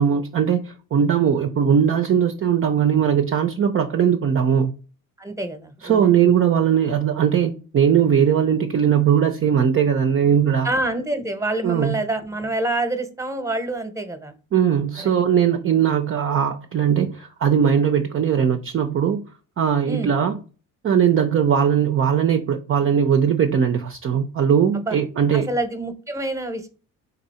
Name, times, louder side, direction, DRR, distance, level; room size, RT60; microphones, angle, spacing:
voice 1, 0.0-4.7 5.8-10.7 11.6-12.0 14.5-19.2 19.6-20.4 20.8-25.5, right 8 dB, 35° right, 0.5 m, -19 dB
voice 2, 5.2-6.3 10.6-14.3 19.9-20.1 24.9-25.0 25.3-26.7, right 2 dB, 10° right, 0.9 m, -27 dB
4.0 x 2.7 x 4.2 m
supercardioid pair, 60°, 37 cm